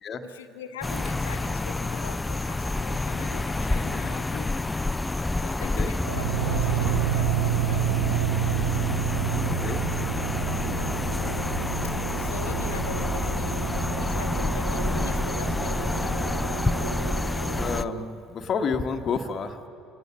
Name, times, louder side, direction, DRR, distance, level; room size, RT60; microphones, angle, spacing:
voice 1, 0.2-4.5 5.4-7.9 11.8-13.6 14.0-16.3, left 7 dB, 70° left, 9 dB, 1.0 m, -42 dB
sound 1, 0.8-17.8, left 2 dB, 15° left, 0.5 m, -28 dB
sound 2, 6.1-18.0, right 10 dB, 70° right, 0.5 m, -30 dB
voice 2, 9.4-9.8 17.6-19.7, left 5 dB, 40° left, 5 dB, 1.2 m, -30 dB
sound 3, 11.7-13.7, right 2 dB, 20° right, 5.0 m, -45 dB
27.5 x 17.5 x 7.3 m, 2.8 s
figure-of-eight pair, 55°, 0 cm